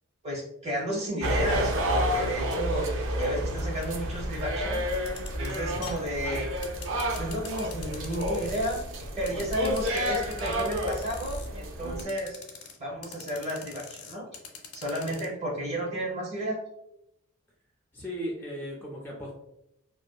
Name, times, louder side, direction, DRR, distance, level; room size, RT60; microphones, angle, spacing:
voice 1, 0.2-2.9 3.1-4.8 5.3-6.5 7.2-12.4 12.8-14.3 14.7-16.6, right 1 dB, 30° right, -2 dB, 0.7 m, -32 dB
sound 1, 1.2-12.0, equal, 60° right, 0.4 m, -30 dB
sound 2, 4.9-8.8 9.3-11.5 12.0-12.8 13.0-15.3, left 6 dB, 85° left, 0.6 m, -43 dB
voice 2, 17.9-19.3, equal, 10° left, -3 dB, 0.3 m, -37 dB
2.6 x 2.1 x 2.3 m, 0.82 s
head